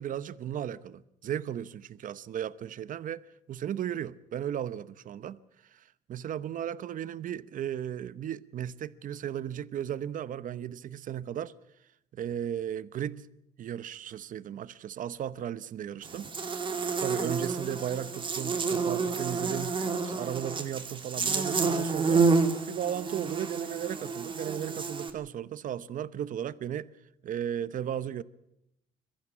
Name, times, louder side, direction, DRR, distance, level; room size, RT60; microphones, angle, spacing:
voice 1, 0.0-3.2 3.5-5.4 5.7-5.8 6.1-11.5 12.1-13.3 13.6-16.3 17.0-22.3 22.7-26.9 27.2-28.2, right 10 dB, 50° right, 0.9 m, -35 dB
Buzz, 16.0-25.1, right 4 dB, 30° right, 2.3 m, -29 dB
22.5 x 14.5 x 8.6 m
cardioid pair, 110°, 17 cm